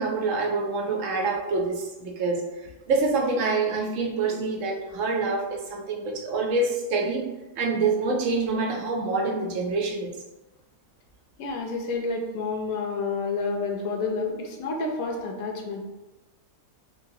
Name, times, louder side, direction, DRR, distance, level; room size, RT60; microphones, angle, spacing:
voice 1, 0.0-2.4 2.9-10.1, right 3 dB, 65° right, 0 dB, 0.9 m, -26 dB
voice 2, 11.4-15.8, left 4 dB, 75° left, 2 dB, 1.0 m, -29 dB
3.0 x 2.7 x 2.7 m, 1.1 s
omnidirectional pair, 1.5 m